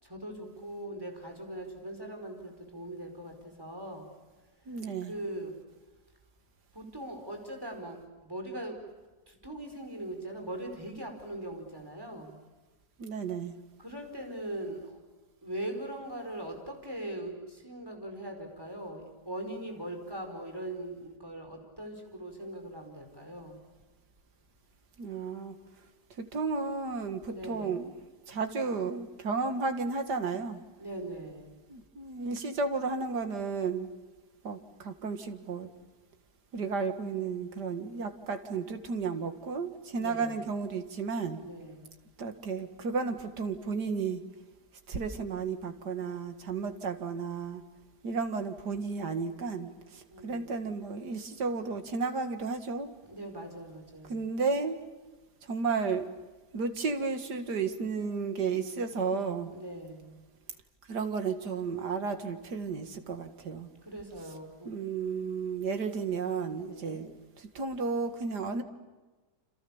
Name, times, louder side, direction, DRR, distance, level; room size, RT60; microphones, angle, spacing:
voice 1, 0.0-4.1 4.7-5.5 6.7-8.8 9.3-12.4 13.8-15.0 15.4-23.6 27.2-27.8 30.8-31.6 40.0-40.4 41.4-42.0 50.1-50.7 53.1-54.2 59.5-60.2 63.8-64.9 66.5-67.1, right 1 dB, 15° right, 3 dB, 5.0 m, -41 dB
voice 2, 4.7-5.1 13.0-13.5 25.0-25.6 26.2-27.9 28.3-30.6 31.7-33.9 34.4-35.7 36.5-41.4 42.2-44.2 44.9-47.6 48.0-52.9 54.1-54.8 55.4-56.1 56.5-59.5 60.9-63.7 64.7-67.1 67.4-68.6, right 4 dB, 80° right, 7 dB, 2.5 m, -33 dB
29.0 x 27.0 x 7.2 m, 1.2 s
omnidirectional pair, 1.7 m